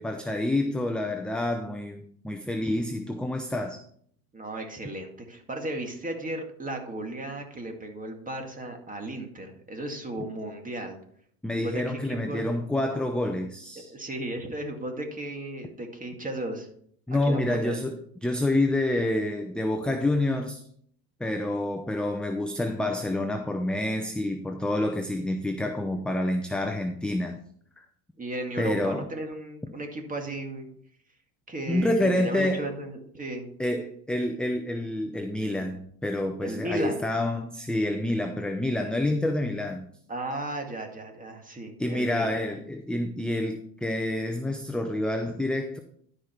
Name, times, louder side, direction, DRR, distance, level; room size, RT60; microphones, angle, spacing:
voice 1, 0.0-3.8 11.4-13.9 17.1-20.6 21.2-27.4 28.6-29.1 31.7-32.7 33.6-39.8 41.8-45.8, left 1 dB, ahead, 5 dB, 0.7 m, -28 dB
voice 2, 4.3-11.0 11.6-12.5 13.9-16.7 17.3-17.8 28.2-30.7 31.5-33.5 36.4-37.1 40.1-42.5, right 1 dB, 20° right, 3 dB, 2.1 m, -35 dB
12.0 x 5.2 x 4.5 m, 0.63 s
supercardioid pair, 90°, 44 cm